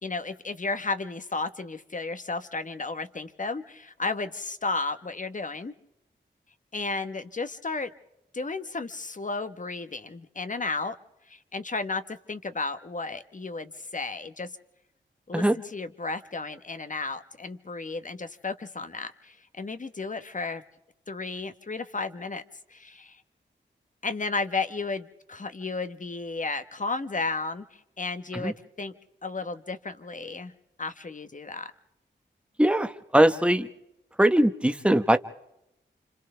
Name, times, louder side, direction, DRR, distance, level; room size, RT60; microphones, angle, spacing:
voice 1, 0.0-5.7 6.7-7.9 8.3-11.0 11.3-14.5 15.3-20.6 21.1-22.4 22.7-23.2 24.0-28.9 29.2-30.5 30.8-31.7, left 3 dB, 40° left, 10 dB, 1.4 m, -33 dB
voice 2, 32.6-33.7 34.2-35.2, right 1 dB, 5° right, 8 dB, 1.3 m, -21 dB
30.0 x 26.0 x 3.5 m, 0.83 s
cardioid pair, 45°, 20 cm